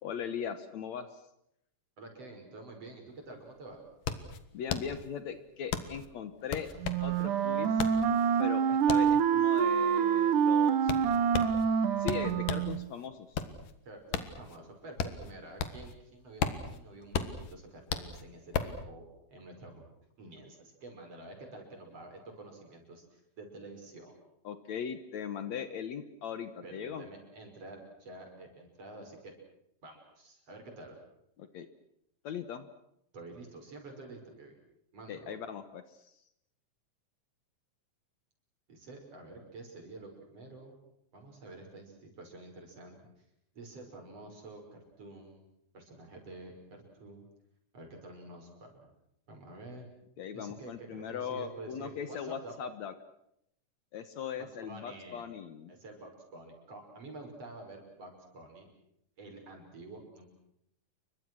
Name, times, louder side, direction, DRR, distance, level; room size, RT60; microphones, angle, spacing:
voice 1, 0.0-1.2 4.5-6.7 7.0-7.9 8.4-10.9 12.0-13.3 24.4-27.1 31.4-31.7 32.2-32.7 35.1-36.1 50.2-52.9 53.9-55.7, left 7 dB, 65° left, 11 dB, 2.2 m, -39 dB
voice 2, 2.0-3.8 13.8-19.8 20.2-24.2 26.6-29.3 29.8-30.9 33.1-34.5 34.9-35.4 38.7-40.7 41.1-43.3 43.5-45.5 45.7-47.3 47.7-48.9 49.3-49.9 50.3-52.5 54.4-55.2 55.7-58.7 59.2-60.3, right 2 dB, 50° right, 2 dB, 6.7 m, -49 dB
sound 1, 3.1-3.2 3.5-12.8 13.1-16.0 16.2-18.8, left 7 dB, 90° left, 3.3 m, -36 dB
Wind instrument woodwind instrument, 6.8-12.9, right 7 dB, 75° right, 2.7 m, -26 dB
29.5 x 23.5 x 6.3 m, 0.77 s
omnidirectional pair, 3.7 m